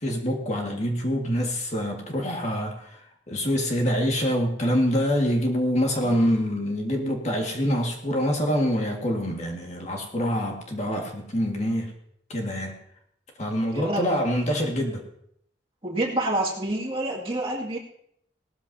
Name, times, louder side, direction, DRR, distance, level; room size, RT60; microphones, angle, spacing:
voice 1, 0.0-3.0 3.3-11.9 12.3-12.8 13.4-15.0, equal, 40° left, 1 dB, 1.9 m, -25 dB
voice 2, 13.7-14.2 15.8-17.8, right 1 dB, 30° right, -3 dB, 2.2 m, -28 dB
18.0 x 13.5 x 2.8 m, 0.71 s
head